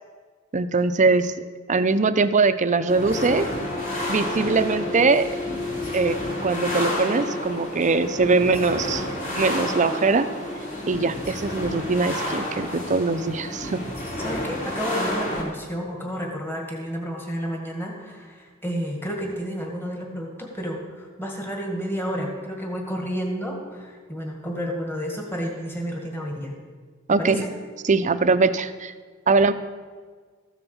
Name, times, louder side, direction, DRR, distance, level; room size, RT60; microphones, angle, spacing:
voice 1, 0.5-3.5 4.1-5.3 5.9-9.0 9.4-10.3 10.9-13.8 27.1-27.4 27.8-28.9 29.3-29.5, right 4 dB, 35° right, 11 dB, 0.6 m, -22 dB
sound 1, 2.9-15.4, left 1 dB, 40° left, 2.8 m, -30 dB
voice 2, 14.2-26.5 27.1-27.5, equal, 10° left, 0 dB, 1.9 m, -31 dB
14.0 x 7.0 x 7.0 m, 1.5 s
head